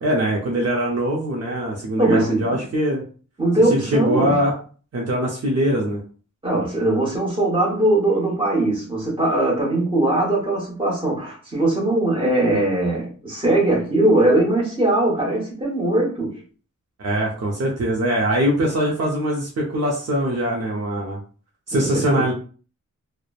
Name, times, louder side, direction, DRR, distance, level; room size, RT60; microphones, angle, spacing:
voice 1, 0.0-3.0 3.7-4.5 4.9-6.0 17.0-21.2 21.7-22.3, right 1 dB, 55° right, -2 dB, 0.6 m, -22 dB
voice 2, 2.0-2.6 3.4-4.4 6.4-16.3 21.7-22.2, right 1 dB, 15° right, -4 dB, 1.1 m, -20 dB
3.0 x 2.1 x 2.4 m, 0.41 s
wide cardioid pair, 130°, 31 cm